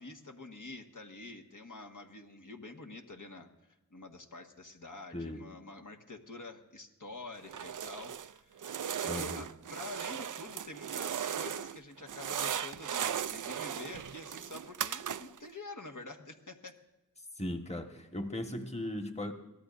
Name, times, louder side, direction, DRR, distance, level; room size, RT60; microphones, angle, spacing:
voice 1, 0.0-3.5 3.9-8.6 9.0-16.7, left 2 dB, 60° left, 2 dB, 1.5 m, -47 dB
sound 1, 7.4-8.3 8.6-11.8 12.1-15.5, right 9 dB, 60° right, 0.4 m, -37 dB
voice 2, 9.1-9.4 17.4-19.3, left 1 dB, 20° left, 5 dB, 1.4 m, -37 dB
23.0 x 16.5 x 2.6 m, 1.0 s
wide cardioid pair, 45°, 35 cm